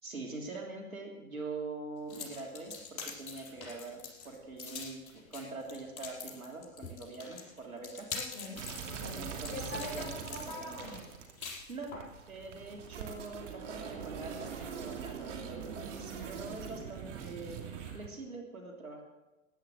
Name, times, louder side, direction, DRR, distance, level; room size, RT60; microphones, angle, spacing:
voice 1, 0.0-8.1 9.1-10.1 10.5-10.8 11.7-12.0 12.3-17.6 17.9-19.0, right 3 dB, 85° right, 1 dB, 3.3 m, -44 dB
sound 1, 2.1-12.1, left 4 dB, 40° left, 5.4 m, -44 dB
voice 2, 8.1-11.0, left 2 dB, 25° left, -1 dB, 5.5 m, -43 dB
sound 2, 8.5-18.1, right 7 dB, 60° right, 2.9 m, -42 dB
16.0 x 10.0 x 6.5 m, 1.1 s
figure-of-eight pair, 110°, 41 cm